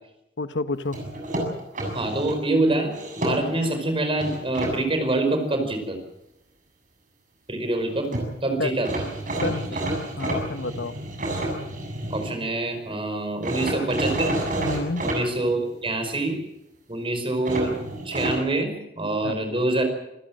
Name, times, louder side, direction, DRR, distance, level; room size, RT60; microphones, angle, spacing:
voice 1, 0.4-1.0 8.6-8.7 9.4-9.7 10.2-10.9 14.6-15.0 19.2-19.3, left 3 dB, 90° left, 12 dB, 1.1 m, -29 dB
sound 1, 0.9-2.4 2.9-3.7 4.2-4.7 7.8-8.3 8.8-12.3 13.4-15.2 17.4-18.4, right 1 dB, 50° right, 7.4 m, -29 dB
voice 2, 1.9-6.0 7.5-8.1 8.4-9.0 9.7-9.8 12.1-14.4 15.0-16.4 16.9-17.7 18.1-19.8, right 2 dB, 30° right, 7 dB, 5.2 m, -25 dB
27.0 x 15.5 x 7.7 m, 0.90 s
head